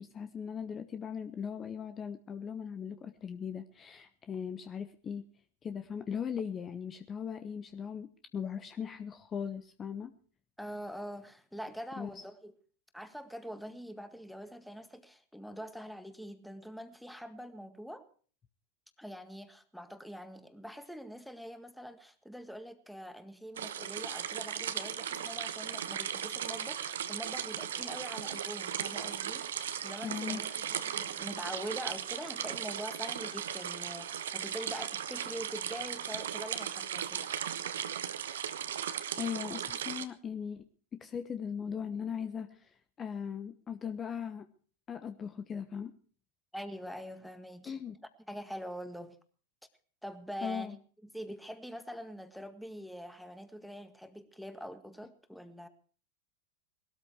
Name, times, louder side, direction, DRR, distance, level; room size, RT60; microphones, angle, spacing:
voice 1, 0.0-5.2 5.6-8.1 8.3-10.1 12.0-12.2 30.0-30.4 39.2-44.5 44.9-45.9 47.6-48.0 50.4-50.8, left 7 dB, 25° left, 10 dB, 0.9 m, -39 dB
voice 2, 10.6-12.5 12.9-18.0 19.0-37.6 46.5-47.7 48.3-49.2 50.0-50.7 51.1-55.7, equal, ahead, 9 dB, 1.8 m, -44 dB
sound 1, 23.6-40.1, right 9 dB, 75° right, 1.2 m, -37 dB
19.0 x 13.0 x 4.7 m, 0.42 s
hypercardioid pair, 95°, 0 cm